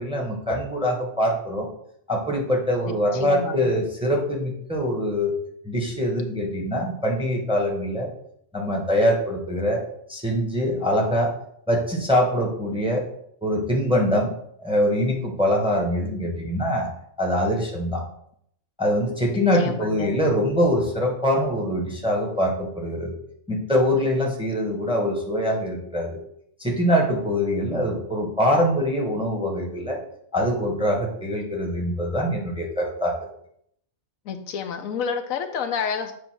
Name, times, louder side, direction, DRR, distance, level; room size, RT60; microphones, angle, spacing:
voice 1, 0.0-1.7 2.1-5.3 5.6-8.1 8.5-9.8 10.1-11.3 11.7-13.1 13.4-14.3 14.6-16.9 17.2-18.0 18.8-23.2 23.5-26.2 26.6-30.0 30.3-33.1, equal, 5° right, 0 dB, 1.0 m, -23 dB
voice 2, 3.2-3.7 19.5-20.1 34.3-36.1, left 6 dB, 75° left, 7 dB, 1.0 m, -29 dB
7.7 x 2.6 x 5.9 m, 0.69 s
omnidirectional pair, 1.4 m